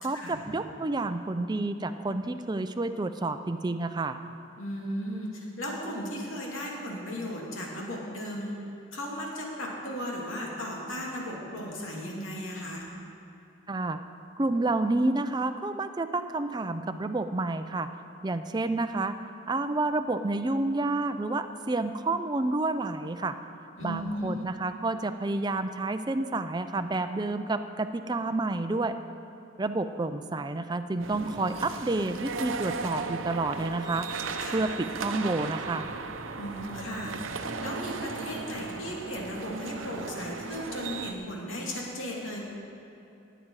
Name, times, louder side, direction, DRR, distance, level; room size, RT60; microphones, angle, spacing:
voice 1, 0.0-4.2 13.7-14.0 14.4-17.9 18.2-19.1 19.5-23.3 23.8-28.9 29.6-35.9, right 2 dB, 20° right, 9 dB, 0.4 m, -29 dB
voice 2, 4.6-8.6 8.9-12.8 23.8-24.4 34.4-34.8 36.4-37.1 37.6-42.5, equal, 90° left, -2 dB, 2.7 m, -36 dB
sound 1, 31.0-41.1, right 4 dB, 80° right, 0.7 m, -36 dB
17.5 x 9.0 x 4.8 m, 2.8 s
head